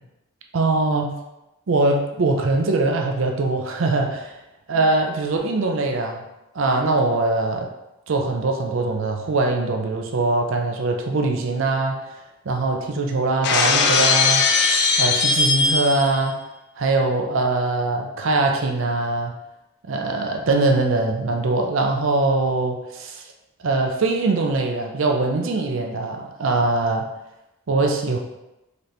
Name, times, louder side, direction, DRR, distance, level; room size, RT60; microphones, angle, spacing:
voice 1, 0.5-1.2 1.7-4.3 4.7-6.2 6.5-7.7 8.1-12.0 12.5-14.5 15.0-16.4 16.8-19.3 19.9-23.2 23.6-27.0 27.7-28.2, right 2 dB, 70° right, 3 dB, 0.5 m, -22 dB
Shatter, 13.4-16.2, left 4 dB, 50° left, 0.4 m, -19 dB
3.9 x 2.9 x 3.3 m, 0.93 s
head